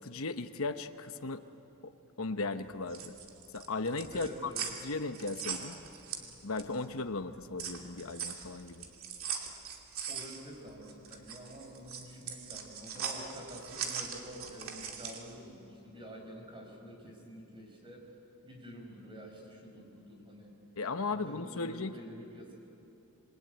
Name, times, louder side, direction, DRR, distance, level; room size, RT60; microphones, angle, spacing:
voice 1, 0.0-1.4 1.8-1.9 2.2-3.1 3.5-4.5 4.8-5.8 6.4-8.9 20.8-22.0, left 3 dB, 70° left, 8 dB, 1.0 m, -36 dB
sound 1, 2.7-6.8 7.2-15.3, right 7 dB, 70° right, 2.6 m, -40 dB
voice 2, 4.1-4.6 6.2-6.3 10.1-18.1 18.4-20.5 21.1-22.6, equal, 25° right, 1 dB, 4.9 m, -48 dB
27.5 x 22.0 x 9.2 m, 2.9 s
head